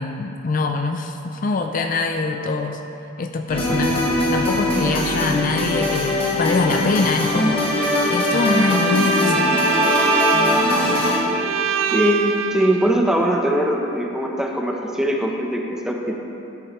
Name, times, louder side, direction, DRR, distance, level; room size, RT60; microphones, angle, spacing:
voice 1, 0.0-2.8 3.2-9.5, left 3 dB, 45° left, 5 dB, 0.4 m, -24 dB
sound 1, 3.5-11.2, left 1 dB, 30° left, 1.5 m, -21 dB
Bowed string instrument, 8.2-12.9, right 8 dB, 85° right, 0.4 m, -24 dB
voice 2, 11.9-16.2, equal, 5° right, 0 dB, 0.8 m, -21 dB
13.0 x 7.8 x 3.1 m, 2.9 s
head